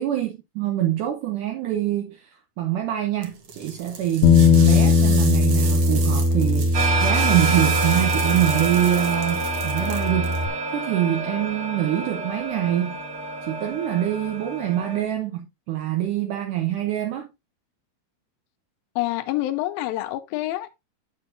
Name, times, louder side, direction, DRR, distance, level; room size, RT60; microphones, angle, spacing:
voice 1, 0.0-13.0 13.4-17.3, right 12 dB, 75° right, 2.1 m, -25 dB
sound 1, 3.2-10.4, right 6 dB, 55° right, 1.6 m, -35 dB
Bass guitar, 4.2-10.5, left 4 dB, 70° left, 1.7 m, -20 dB
sound 2, 6.7-15.0, right 3 dB, 35° right, 1.7 m, -27 dB
voice 2, 19.0-20.8, left 16 dB, 90° left, 2.4 m, -27 dB
9.3 x 6.9 x 2.6 m
omnidirectional pair, 4.2 m